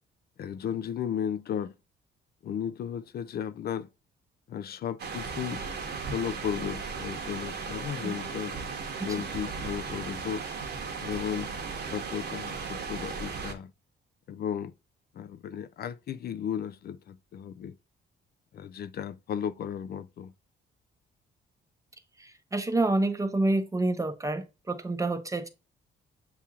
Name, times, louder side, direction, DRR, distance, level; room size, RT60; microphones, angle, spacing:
voice 1, 0.4-1.7 2.4-3.9 4.5-5.6 6.1-8.6 9.0-10.4 11.0-11.5 11.9-13.7 14.3-14.7 15.1-17.8 18.5-20.3, left 8 dB, 55° left, 0.4 m, -34 dB
sound 1, 5.0-13.5, right 5 dB, 55° right, 1.1 m, -36 dB
voice 2, 22.2-25.5, right 2 dB, 15° right, 0.7 m, -28 dB
6.8 x 2.9 x 2.4 m
cardioid pair, 90°, 20 cm